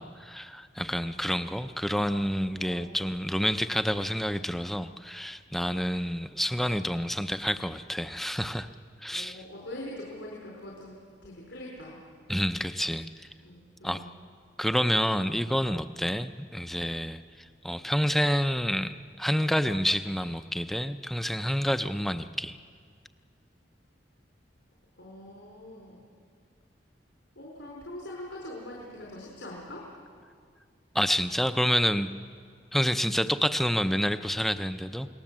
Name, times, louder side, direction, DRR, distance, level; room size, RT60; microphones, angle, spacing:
voice 1, 0.0-8.7 9.0-9.4 12.3-13.1 13.8-14.0 14.6-17.2 17.6-22.6 30.9-32.1 32.7-35.1, equal, ahead, 9 dB, 0.5 m, -28 dB
voice 2, 2.6-3.2 9.1-11.0 11.2-12.0 13.4-14.1 25.0-26.1 27.3-29.8, left 1 dB, 90° left, -3 dB, 4.4 m, -43 dB
28.5 x 19.0 x 7.4 m, 2.1 s
head